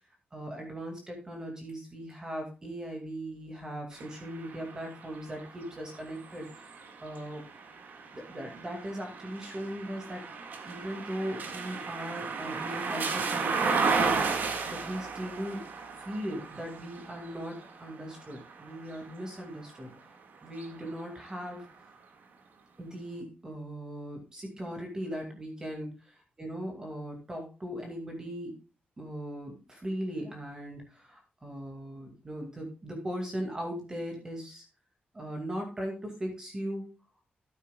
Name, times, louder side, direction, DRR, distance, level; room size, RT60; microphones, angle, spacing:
voice 1, 0.3-7.4 8.1-10.2 10.6-15.6 16.0-19.9 20.4-21.7 22.8-25.9 26.4-28.5 29.0-34.6 35.1-36.8, equal, 20° right, 3 dB, 2.3 m, -38 dB
sound 1, 3.9-19.9 20.4-21.6, right 5 dB, 60° right, 1.9 m, -35 dB
13.0 x 9.3 x 2.4 m, 0.33 s
wide cardioid pair, 175°, 3 cm